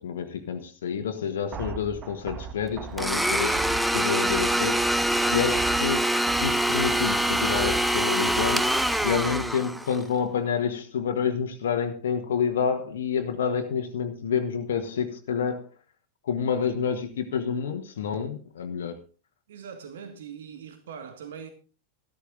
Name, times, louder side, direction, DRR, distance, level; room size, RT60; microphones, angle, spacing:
voice 1, 0.0-3.6 3.9-15.7 16.2-19.0, left 7 dB, 60° left, 1.4 m, -29 dB
sound 1, 1.5-9.5, right 6 dB, 30° right, 1.0 m, -38 dB
Domestic sounds home sounds, 3.0-10.0, right 1 dB, ahead, 0.7 m, -24 dB
voice 2, 19.5-21.5, right 7 dB, 60° right, 1.7 m, -41 dB
13.0 x 12.0 x 3.8 m
figure-of-eight pair, 90°, 0 cm